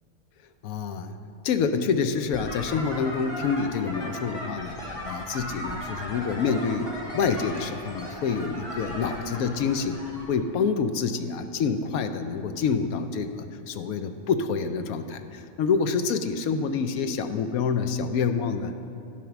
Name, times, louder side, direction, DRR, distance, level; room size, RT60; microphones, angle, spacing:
voice 1, 0.6-1.2 1.4-4.8 5.0-10.0 10.3-18.8, left 5 dB, 80° left, 8 dB, 1.1 m, -27 dB
sound 1, 2.3-10.2, equal, 40° left, 2.2 m, -37 dB
11.0 x 7.3 x 5.8 m, 2.5 s
omnidirectional pair, 1.5 m